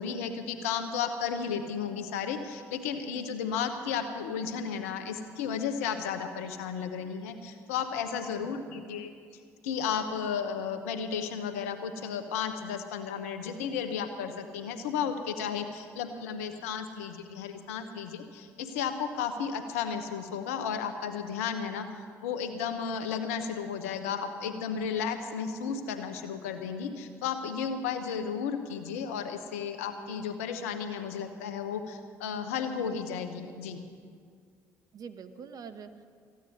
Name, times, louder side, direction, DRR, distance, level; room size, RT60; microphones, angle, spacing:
voice 1, 0.0-9.1 9.6-33.8, left 7 dB, 85° left, 8 dB, 1.1 m, -33 dB
voice 2, 8.2-8.9 34.9-36.0, right 6 dB, 55° right, 10 dB, 1.2 m, -46 dB
15.0 x 9.0 x 9.9 m, 2.2 s
hypercardioid pair, 55°, 8 cm